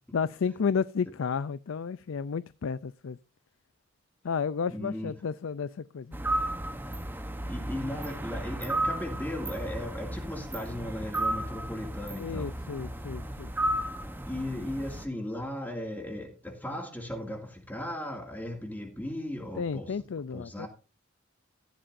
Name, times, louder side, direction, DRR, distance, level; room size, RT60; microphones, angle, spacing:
voice 1, 0.1-3.2 4.2-6.2 12.2-13.5 19.6-20.7, left 6 dB, 85° left, 0.4 m, -32 dB
voice 2, 4.7-5.1 7.5-12.6 14.3-20.0 20.3-20.7, left 1 dB, 10° left, 2.3 m, -37 dB
sound 1, 6.1-15.1, right 1 dB, 10° right, 0.9 m, -34 dB
14.5 x 11.5 x 2.6 m
head